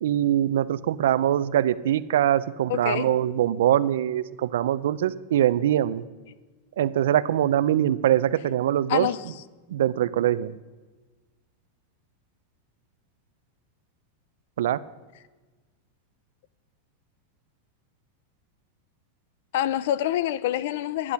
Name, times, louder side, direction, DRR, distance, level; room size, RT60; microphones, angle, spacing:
voice 1, 0.0-6.0 6.8-9.1 9.7-10.5 14.6-14.8, right 11 dB, 80° right, 0.5 m, -23 dB
voice 2, 2.7-3.1 8.9-9.2 19.5-21.1, left 12 dB, 55° left, 0.4 m, -26 dB
11.0 x 9.7 x 5.8 m
supercardioid pair, 180°, 0 cm